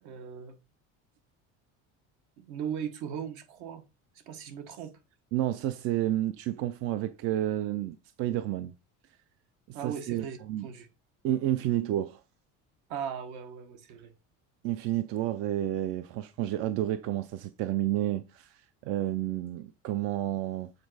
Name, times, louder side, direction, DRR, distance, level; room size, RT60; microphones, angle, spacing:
voice 1, 0.0-0.6 2.4-3.8 4.3-4.9 9.7-10.4 10.6-10.9 12.9-14.1, right 8 dB, 65° right, 1.3 m, -38 dB
voice 2, 5.3-8.7 9.7-10.7 11.2-12.2 14.6-20.7, right 13 dB, 45° right, 0.4 m, -30 dB
7.4 x 4.0 x 4.7 m
cardioid pair, 180°, 32 cm